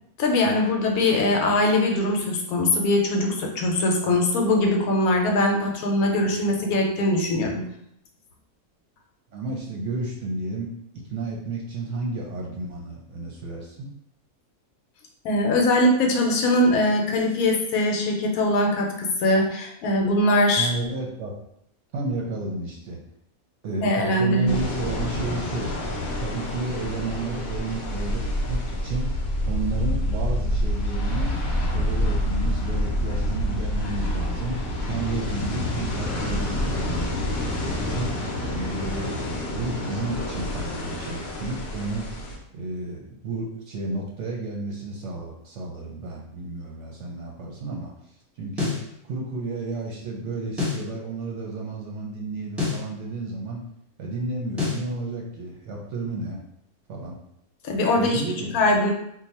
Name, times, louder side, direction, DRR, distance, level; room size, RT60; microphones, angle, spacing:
voice 1, 0.2-7.6 15.2-20.7 23.8-24.5 57.6-58.2 58.5-58.9, left 1 dB, 75° left, 1 dB, 1.1 m, -21 dB
voice 2, 9.3-10.7 11.1-13.9 20.6-21.4 21.9-23.0 23.6-25.7 26.2-29.1 29.5-31.3 31.7-34.6 34.9-37.2 37.9-38.1 38.4-39.2 39.5-42.1 42.5-47.9 48.4-48.7 49.0-53.6 54.0-56.4 56.9-57.2 58.0-58.6, right 2 dB, 65° right, -2 dB, 0.8 m, -32 dB
sound 1, 24.5-42.4, left 1 dB, 55° left, 0.8 m, -27 dB
sound 2, 48.6-48.9 50.6-50.9 52.6-52.9 54.6-54.9, left 4 dB, ahead, 0.9 m, -26 dB
2.8 x 2.2 x 4.1 m, 0.75 s
omnidirectional pair, 1.6 m